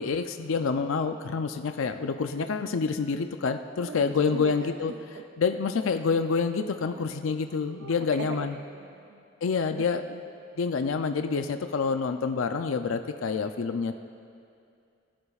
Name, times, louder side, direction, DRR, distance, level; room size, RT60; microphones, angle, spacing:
voice 1, 0.0-4.9 5.4-8.6 9.4-10.2 10.6-14.0, left 5 dB, 70° left, 8 dB, 0.4 m, -27 dB
voice 2, 3.8-5.6 6.9-9.2 9.9-10.2, right 3 dB, 60° right, 3 dB, 0.5 m, -41 dB
25.0 x 11.0 x 2.4 m, 2.5 s
head